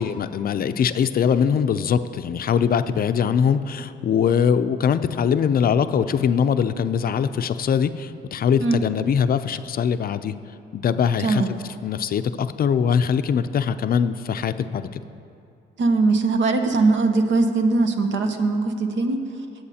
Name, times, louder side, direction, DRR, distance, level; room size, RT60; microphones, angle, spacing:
voice 1, 0.0-10.3 10.7-11.4 11.8-14.9, left 7 dB, 50° left, 11 dB, 0.4 m, -22 dB
voice 2, 15.8-19.2, right 3 dB, 70° right, 6 dB, 1.0 m, -20 dB
18.5 x 7.9 x 2.8 m, 2.5 s
cardioid pair, 90°, 20 cm